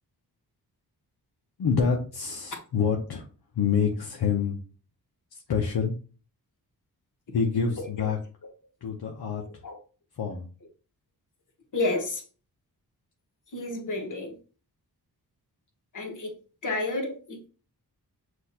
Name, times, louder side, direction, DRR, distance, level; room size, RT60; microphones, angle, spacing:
voice 1, 1.6-3.3 3.5-4.6 5.5-5.9 7.3-8.2 8.8-9.4 10.2-10.5, left 6 dB, 75° left, 0 dB, 0.8 m, -26 dB
voice 2, 11.7-12.2 13.5-14.4 15.9-16.3 16.6-17.5, left 2 dB, 50° left, 1 dB, 1.4 m, -30 dB
6.1 x 2.6 x 2.8 m, 0.37 s
wide cardioid pair, 80°, 39 cm